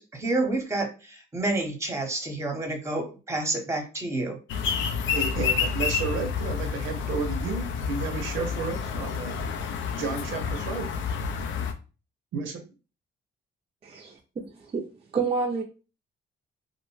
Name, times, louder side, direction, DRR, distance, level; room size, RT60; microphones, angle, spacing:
voice 1, 0.0-4.4, right 2 dB, 15° right, 3 dB, 0.8 m, -29 dB
sound 1, 4.5-11.7, left 6 dB, 75° left, 0.5 m, -29 dB
voice 2, 5.1-9.4 10.0-11.0 12.3-12.6, right 5 dB, 85° right, 6 dB, 0.6 m, -32 dB
voice 3, 13.8-14.9 15.1-15.6, right 4 dB, 30° right, 0 dB, 0.4 m, -29 dB
2.6 x 2.1 x 3.0 m, 0.32 s
cardioid pair, 90°, 20 cm